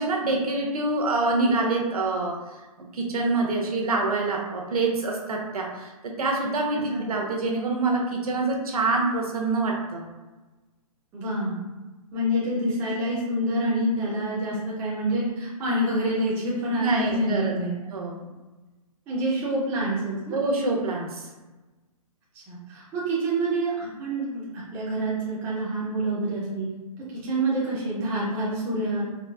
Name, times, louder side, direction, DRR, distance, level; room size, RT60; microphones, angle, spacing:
voice 1, 0.0-2.4 2.9-10.1 16.8-17.5 17.9-18.3 20.3-21.3, right 3 dB, 70° right, 0 dB, 0.8 m, -26 dB
voice 2, 11.1-11.6 12.1-17.8 19.1-20.4 22.3-26.7 27.1-29.1, right 1 dB, 10° right, -7 dB, 0.5 m, -27 dB
3.9 x 2.4 x 2.3 m, 1.2 s
hypercardioid pair, 160°, 19 cm